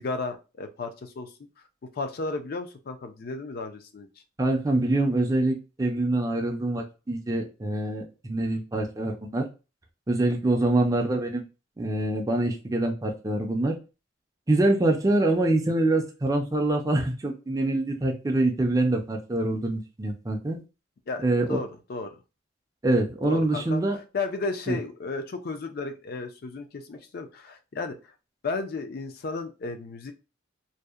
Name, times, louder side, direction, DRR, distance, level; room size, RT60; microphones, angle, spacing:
voice 1, 0.0-1.3 1.9-4.1 21.1-22.1 23.2-23.8 24.1-28.0 28.4-30.1, left 3 dB, 50° left, 7 dB, 0.4 m, -33 dB
voice 2, 4.4-9.4 10.1-11.4 11.8-13.8 14.5-20.6 21.2-21.6 22.8-24.0 24.7-24.8, right 2 dB, 15° right, 2 dB, 0.4 m, -25 dB
2.6 x 2.0 x 2.3 m, 0.30 s
head